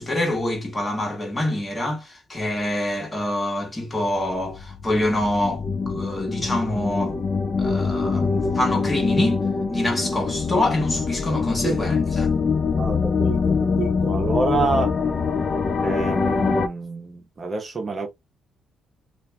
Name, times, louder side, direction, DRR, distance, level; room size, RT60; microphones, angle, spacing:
voice 1, 0.0-7.2 7.6-9.4 9.7-12.3, left 1 dB, 25° left, 1.4 m, -26 dB
sound 1, 4.1-16.7, left 5 dB, 40° left, 0.4 m, -24 dB
voice 2, 12.8-14.9 15.8-18.1, right 4 dB, 35° right, 0.8 m, -27 dB
2.9 x 2.5 x 2.2 m
cardioid pair, 90°, 0 cm